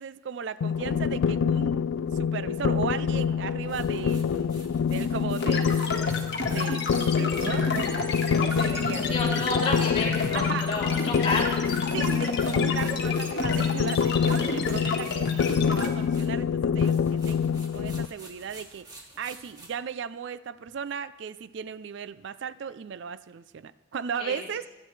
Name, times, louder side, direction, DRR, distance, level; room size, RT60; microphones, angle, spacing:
voice 1, 0.0-1.8 2.1-5.9 6.5-9.1 10.3-10.7 11.9-17.4 17.7-18.9 19.2-24.7, right 7 dB, 60° right, 15 dB, 0.4 m, -36 dB
sound 1, 0.6-18.1, left 7 dB, 80° left, 0.3 m, -26 dB
sound 2, 3.6-16.5 16.7-19.7, right 2 dB, 20° right, 2.0 m, -49 dB
sound 3, 5.4-15.9, left 3 dB, 55° left, 1.6 m, -31 dB
voice 2, 9.1-11.6 24.2-24.5, left 2 dB, 30° left, -3 dB, 4.0 m, -30 dB
27.0 x 9.6 x 3.2 m, 1.1 s
head